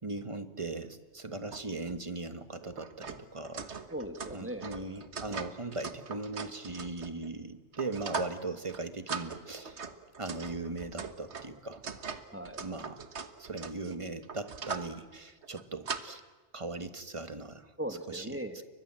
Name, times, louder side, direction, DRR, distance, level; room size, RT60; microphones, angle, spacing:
voice 1, 0.0-3.7 4.3-9.9 10.2-11.8 12.6-13.1 13.4-16.2 16.5-18.4, right 3 dB, 30° right, 9 dB, 1.5 m, -39 dB
sound 1, 1.5-1.6 1.9-2.0 2.6-7.3 7.7-8.4 8.7-8.8 9.1-14.9 15.4-16.0, right 5 dB, 75° right, 1.6 m, -41 dB
voice 2, 3.9-4.9 12.3-12.6 17.8-18.6, right 1 dB, 10° right, 7 dB, 1.7 m, -39 dB
30.0 x 23.5 x 7.6 m, 1.3 s
omnidirectional pair, 1.1 m